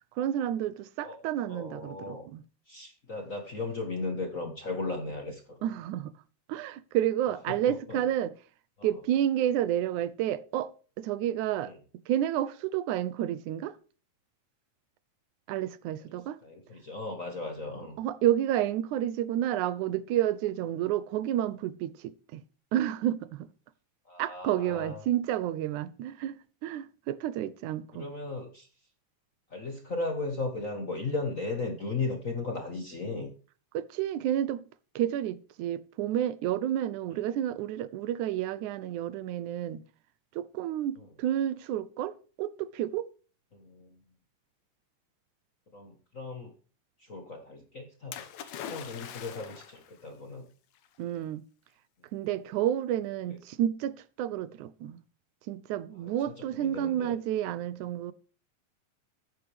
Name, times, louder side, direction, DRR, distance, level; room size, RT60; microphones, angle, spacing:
voice 1, 0.2-2.4 5.6-6.1 6.5-8.3 8.8-10.7 11.0-13.8 15.5-16.4 18.0-22.4 22.7-23.5 24.2-28.1 33.7-34.6 35.0-39.8 40.4-43.1 51.0-51.4 52.1-55.0 55.5-58.1, right 11 dB, 90° right, 2.2 m, -30 dB
voice 2, 1.5-2.3 2.7-5.7 7.5-8.0 8.8-8.9 11.6-11.8 16.4-18.0 24.1-25.0 27.9-28.7 29.5-33.3 41.0-41.1 43.5-44.0 45.7-46.5 47.0-50.5 56.0-56.1 56.6-57.1, left 3 dB, 40° left, 1.2 m, -36 dB
Splash splatter, 48.1-49.9 50.8-50.9, left 9 dB, 75° left, 2.5 m, -42 dB
14.5 x 9.9 x 3.5 m
omnidirectional pair, 3.4 m